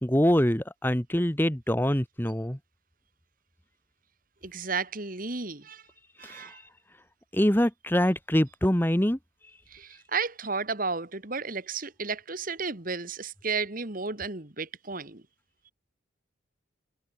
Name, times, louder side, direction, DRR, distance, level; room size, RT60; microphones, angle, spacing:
voice 1, 0.0-2.6 6.2-6.5 7.3-9.2, equal, 10° left, 1.3 m, -24 dB
voice 2, 4.4-5.8 6.2-6.6 9.7-15.2, right 4 dB, 40° right, 1.9 m, -33 dB
head